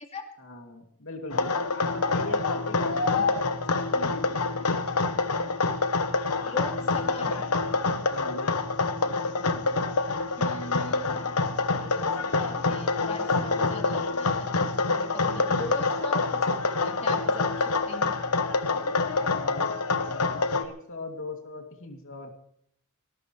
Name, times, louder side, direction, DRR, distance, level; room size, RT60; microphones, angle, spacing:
voice 1, 0.4-4.4 6.8-7.7 8.0-9.9 19.1-22.3, left 2 dB, 65° left, 3 dB, 2.8 m, -42 dB
sound 1, 1.3-20.7, left 3 dB, 85° left, 1.2 m, -26 dB
voice 2, 6.4-7.4 10.4-18.2, left 2 dB, 30° left, 2 dB, 2.7 m, -39 dB
19.5 x 18.5 x 3.3 m, 0.68 s
head